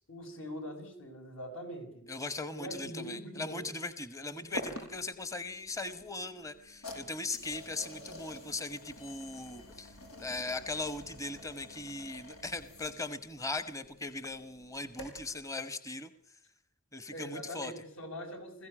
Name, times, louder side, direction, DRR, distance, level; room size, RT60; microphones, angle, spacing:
voice 1, 0.1-2.1 2.5-3.6 17.1-18.7, equal, 65° left, 4 dB, 6.4 m, -42 dB
voice 2, 2.1-16.1 16.9-17.7, left 3 dB, 15° left, 13 dB, 1.2 m, -39 dB
sound 1, 4.5-15.4, left 1 dB, 90° left, 6.0 m, -48 dB
21.5 x 15.5 x 9.9 m, 0.73 s
head